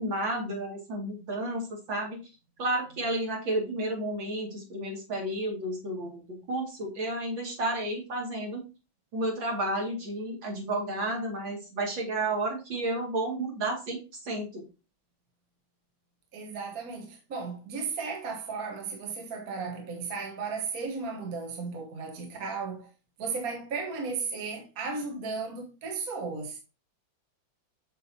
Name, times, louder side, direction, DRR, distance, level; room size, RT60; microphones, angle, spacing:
voice 1, 0.0-2.2 2.6-6.2 6.5-8.6 9.1-14.6, right 1 dB, 70° right, 3.1 m, -31 dB
voice 2, 16.3-22.9 23.2-26.6, right 4 dB, 50° right, 1.5 m, -35 dB
7.6 x 6.4 x 2.8 m
omnidirectional pair, 2.2 m